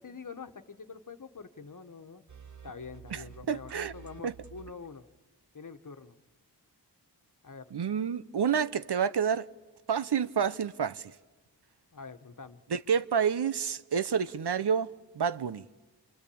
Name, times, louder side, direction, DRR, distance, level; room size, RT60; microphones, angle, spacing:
voice 1, 0.0-2.2 2.6-5.0 5.5-6.1 7.4-7.6 11.9-12.6, left 5 dB, 50° left, 1.4 m, -45 dB
sound 1, 2.3-5.0, right 8 dB, 45° right, 1.5 m, -50 dB
voice 2, 3.1-3.9 4.2-4.3 7.7-9.5 9.9-11.1 12.7-15.7, right 7 dB, 70° right, 0.9 m, -29 dB
28.5 x 24.5 x 8.6 m
wide cardioid pair, 100°, 41 cm